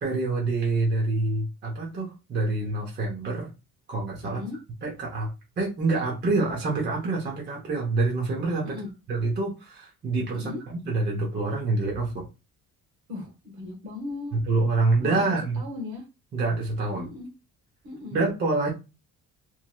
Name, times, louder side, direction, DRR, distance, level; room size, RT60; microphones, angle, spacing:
voice 1, 0.0-3.5 3.9-4.4 4.8-8.8 9.1-12.3 14.3-15.6 16.3-17.1 18.1-18.7, right 3 dB, 35° right, -2 dB, 0.7 m, -26 dB
voice 2, 4.2-4.6 8.6-8.9 10.3-10.6 13.1-14.4 15.0-16.0 16.9-17.3 17.8-18.2, left 3 dB, 70° right, 0 dB, 1.4 m, -37 dB
3.1 x 2.7 x 2.2 m, 0.28 s
cardioid pair, 160°, 30 cm